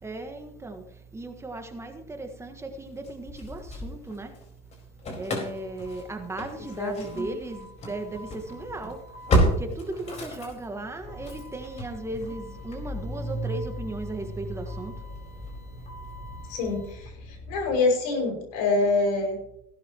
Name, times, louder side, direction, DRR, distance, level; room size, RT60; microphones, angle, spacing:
voice 1, 0.0-0.8 1.1-4.3 5.1-9.0 9.4-14.9, right 2 dB, 15° right, 1.5 m, -36 dB
Engine starting / Slam, 3.0-4.4 4.7-17.8, equal, 35° left, 4.4 m, -32 dB
voice 2, 6.8-7.3 16.5-19.4, left 3 dB, 85° left, 6.0 m, -26 dB
17.0 x 12.5 x 3.0 m
supercardioid pair, 115°, 19 cm